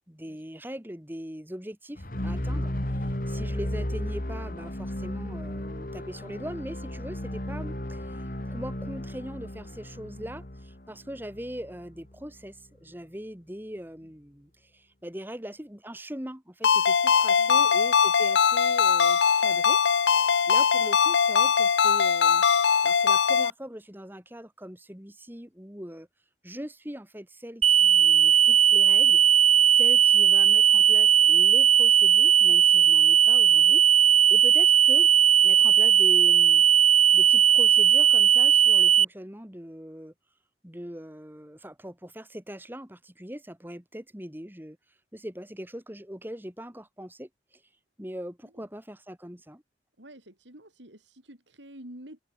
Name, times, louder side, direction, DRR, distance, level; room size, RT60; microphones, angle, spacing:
voice 1, 0.1-2.7 3.0-8.2 8.5-19.8 20.1-22.4 22.8-26.1 26.4-29.2 29.7-35.1 35.4-36.6 37.1-40.1 40.6-44.8 45.1-47.6 48.0-49.6, equal, 10° right, 2.3 m, -41 dB
sound 1, 2.0-12.0, left 1 dB, 50° left, 2.6 m, -34 dB
Ringtone, 16.6-23.5, left 6 dB, 80° left, 0.7 m, -21 dB
voice 2, 17.4-17.7 30.9-31.0 32.5-32.6 48.4-48.7 50.0-52.2, right 1 dB, 85° right, 7.7 m, -49 dB
sound 2, 27.6-39.0, right 9 dB, 35° right, 0.4 m, -18 dB
head